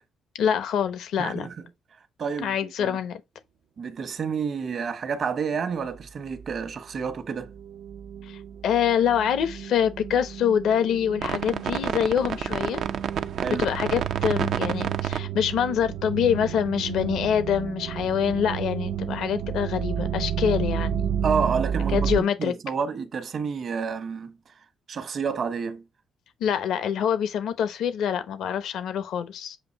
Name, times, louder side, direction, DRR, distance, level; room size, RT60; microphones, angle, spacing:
voice 1, 0.4-1.5 2.4-3.2 8.2-12.9 13.5-21.1 21.9-22.5 26.4-29.6, left 8 dB, 80° left, 1.0 m, -25 dB
voice 2, 1.2-1.5 2.2-3.0 3.8-7.5 13.4-13.7 21.2-24.3 24.9-25.8, right 6 dB, 55° right, 1.1 m, -29 dB
sound 1, 6.0-6.1 6.3-6.7 7.0-22.2, right 9 dB, 75° right, 0.6 m, -30 dB
7.7 x 2.7 x 5.2 m
cardioid pair, 90°, 0 cm